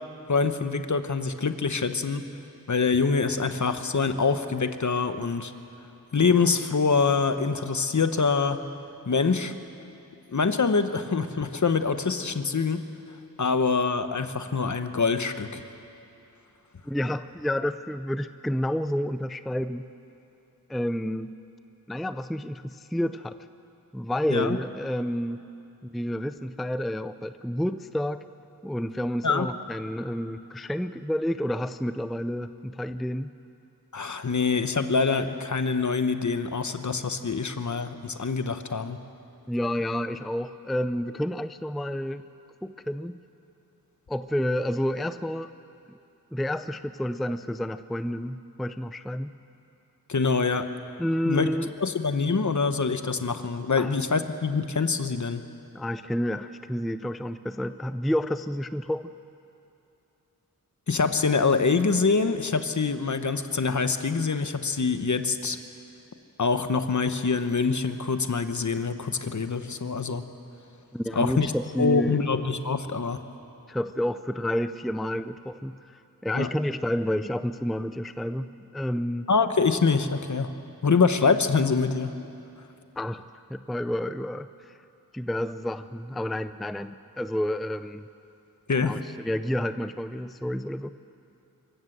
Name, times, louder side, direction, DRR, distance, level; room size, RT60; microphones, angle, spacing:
voice 1, 0.3-2.3 2.7-5.5 6.1-8.6 9.1-9.5 10.3-12.8 13.4-15.6 24.3-24.6 29.2-29.5 33.9-39.0 50.1-50.7 51.3-51.5 51.8-55.4 60.9-65.6 66.4-70.2 71.1-71.5 71.8-73.2 76.3-76.5 79.3-80.5 80.8-82.1 88.7-89.0, left 4 dB, 55° left, 9 dB, 1.1 m, -25 dB
voice 2, 16.9-19.9 20.7-21.3 21.9-23.4 23.9-25.4 25.8-28.2 28.6-33.3 39.5-42.2 42.6-43.2 44.1-45.5 45.9-46.0 46.3-49.3 51.0-51.7 53.8-54.0 55.7-59.1 70.9-72.2 73.7-79.3 83.0-84.8 85.1-88.1 88.7-90.9, equal, ahead, 12 dB, 0.4 m, -30 dB
25.0 x 15.0 x 8.0 m, 2.7 s
wide cardioid pair, 85°, 36 cm